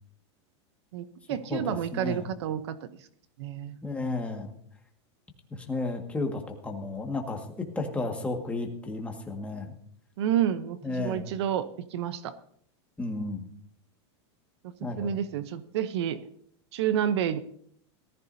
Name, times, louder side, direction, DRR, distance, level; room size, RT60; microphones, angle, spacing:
voice 1, 0.9-2.8 3.4-3.7 10.2-12.4 15.0-16.2 16.7-17.4, right 9 dB, 70° right, 13 dB, 0.9 m, -29 dB
voice 2, 1.5-2.3 3.8-4.5 5.7-9.7 10.8-11.3 13.0-13.4 14.8-15.1, left 2 dB, 10° left, 2 dB, 1.9 m, -33 dB
18.5 x 14.0 x 2.8 m, 0.65 s
supercardioid pair, 145°, 15 cm